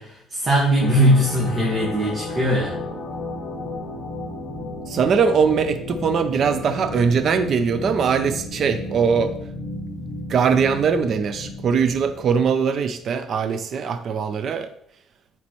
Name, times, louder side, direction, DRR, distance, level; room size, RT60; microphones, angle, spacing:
voice 1, 0.0-2.8, equal, 30° right, -4 dB, 1.6 m, -20 dB
sound 1, 0.8-12.6, left 2 dB, 45° left, 1.5 m, -33 dB
voice 2, 4.9-9.3 10.3-14.7, right 6 dB, 45° right, 10 dB, 0.5 m, -21 dB
8.3 x 4.2 x 3.1 m, 0.70 s
cardioid pair, 135°, 0 cm